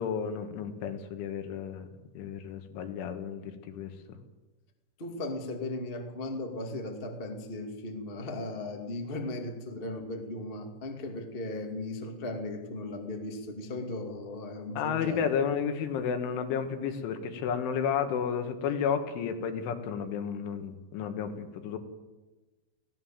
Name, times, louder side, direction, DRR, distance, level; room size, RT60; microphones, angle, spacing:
voice 1, 0.0-1.9 2.2-4.2 14.8-21.8, left 7 dB, 85° left, 7 dB, 4.1 m, -32 dB
voice 2, 5.0-15.2, left 2 dB, 40° left, 3 dB, 0.7 m, -37 dB
21.0 x 17.0 x 7.4 m, 1.2 s
omnidirectional pair, 5.4 m